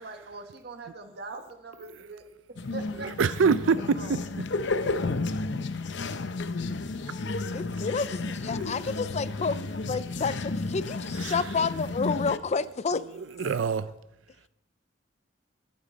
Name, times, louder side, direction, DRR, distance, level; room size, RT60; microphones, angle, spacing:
voice 1, 0.0-2.2 2.7-4.2, right 3 dB, 60° right, 5 dB, 1.7 m, -42 dB
sound 1, 2.6-12.4, left 3 dB, 65° left, 0.7 m, -32 dB
voice 2, 3.0-4.2 11.2-11.4 13.4-13.9, right 5 dB, 85° right, 14 dB, 0.5 m, -24 dB
voice 3, 7.0-9.6 9.9-13.0, left 4 dB, 35° left, 15 dB, 0.5 m, -30 dB
23.0 x 8.7 x 4.1 m, 0.87 s
head